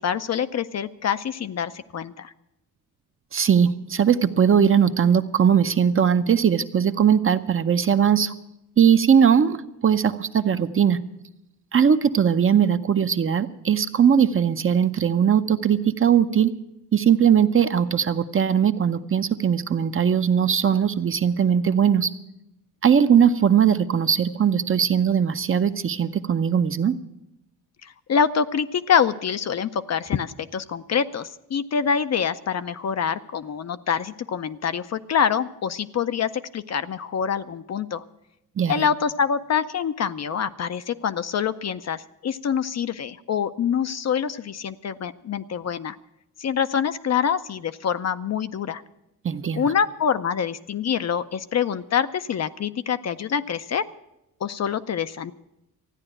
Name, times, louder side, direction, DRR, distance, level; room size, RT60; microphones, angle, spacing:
voice 1, 0.0-2.3 27.8-38.0 38.7-46.0 46.4-48.8 49.6-53.9 54.4-55.3, left 7 dB, 45° left, 12 dB, 0.6 m, -25 dB
voice 2, 3.3-8.3 8.8-11.0 11.7-16.5 16.9-22.1 22.8-27.0 38.6-38.9 49.2-49.7, right 8 dB, 35° right, 10 dB, 0.7 m, -20 dB
14.0 x 9.8 x 8.8 m, 0.88 s
cardioid pair, 110°, 38 cm